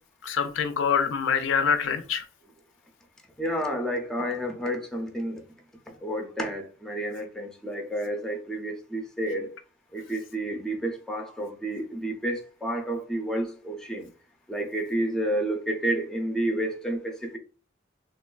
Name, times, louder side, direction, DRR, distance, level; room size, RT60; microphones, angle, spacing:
voice 1, 0.2-2.2, left 6 dB, 70° left, 0.4 m, -25 dB
voice 2, 3.4-5.4 6.0-9.6 9.9-14.1 14.5-17.4, right 1 dB, 5° left, 0.4 m, -30 dB
2.9 x 2.2 x 2.2 m
head